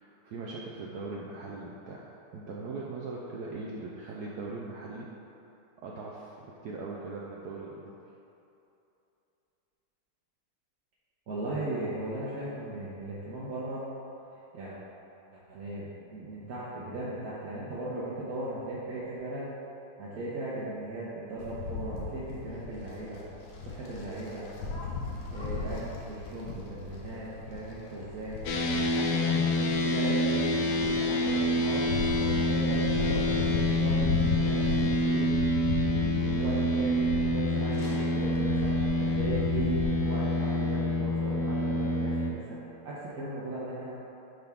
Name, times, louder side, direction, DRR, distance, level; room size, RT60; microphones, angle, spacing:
voice 1, 0.0-5.1 5.8-8.0, right 3 dB, 90° right, -3 dB, 0.8 m, -40 dB
voice 2, 11.3-13.8 14.5-14.8 15.3-19.5 20.0-23.2 23.6-24.5 25.3-25.8 26.1-31.9 32.2-35.3 35.6-38.7 39.0-44.0, right 1 dB, 55° right, -8 dB, 1.1 m, -37 dB
sound 1, 21.4-39.9, left 4 dB, 60° left, 1.3 m, -36 dB
sound 2, 28.5-42.3, left 1 dB, 90° left, 0.8 m, -27 dB
10.0 x 4.0 x 3.5 m, 2.8 s
omnidirectional pair, 2.4 m